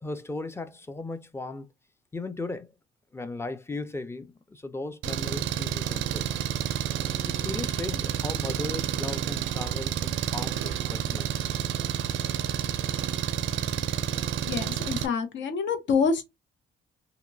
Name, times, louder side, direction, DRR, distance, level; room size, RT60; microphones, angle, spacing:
voice 1, 0.0-1.7 2.1-2.7 3.1-6.3 7.3-11.4, left 2 dB, 10° left, 0.5 m, -37 dB
Engine, 5.0-15.1, right 10 dB, 75° right, 0.4 m, -29 dB
voice 2, 14.5-16.3, left 5 dB, 70° left, 0.8 m, -26 dB
2.9 x 2.2 x 2.5 m
cardioid pair, 90°, 20 cm